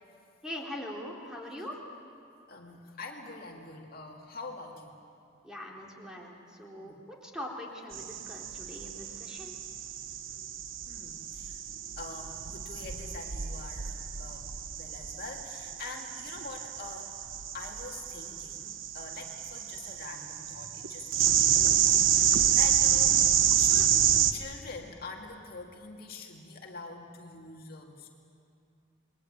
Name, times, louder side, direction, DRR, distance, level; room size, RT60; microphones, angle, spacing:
voice 1, 0.4-1.8 5.4-9.5, left 1 dB, 5° right, -2 dB, 3.6 m, -42 dB
voice 2, 2.5-4.9 6.8-7.0 9.1-9.2 10.3-10.5 10.9-11.6 12.0-17.1 17.5-23.2 23.6-23.9 24.3-28.1, left 3 dB, 50° left, 0 dB, 2.3 m, -45 dB
sound 1, 7.9-24.3, right 9 dB, 90° right, 1.2 m, -28 dB
28.5 x 21.5 x 8.8 m, 2.5 s
head